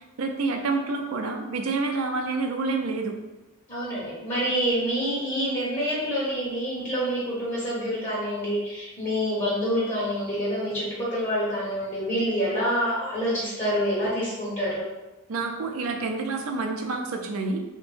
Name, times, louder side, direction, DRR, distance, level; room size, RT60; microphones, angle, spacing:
voice 1, 0.2-3.1 15.3-17.6, right 3 dB, 85° right, 4 dB, 0.4 m, -28 dB
voice 2, 3.7-14.9, equal, 30° left, -8 dB, 0.8 m, -27 dB
2.9 x 2.1 x 3.1 m, 1.0 s
head